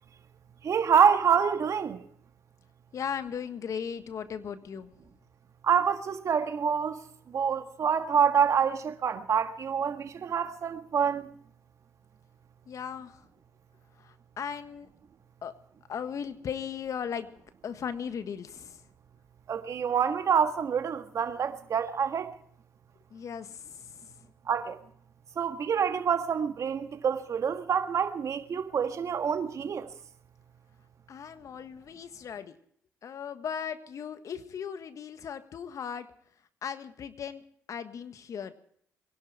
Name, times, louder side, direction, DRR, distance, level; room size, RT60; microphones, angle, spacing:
voice 1, 0.6-2.0 5.6-6.9 7.3-11.3 19.5-22.3 24.5-24.8 25.3-29.9, right 7 dB, 55° right, 1.6 m, -26 dB
voice 2, 2.9-4.9 12.7-13.2 14.0-14.9 15.4-15.5 15.9-18.8 23.1-24.2 31.1-32.6 33.0-36.1 36.6-37.4 37.7-38.5, left 7 dB, 55° left, 1.4 m, -37 dB
23.0 x 11.5 x 4.8 m
hypercardioid pair, 50°, 6 cm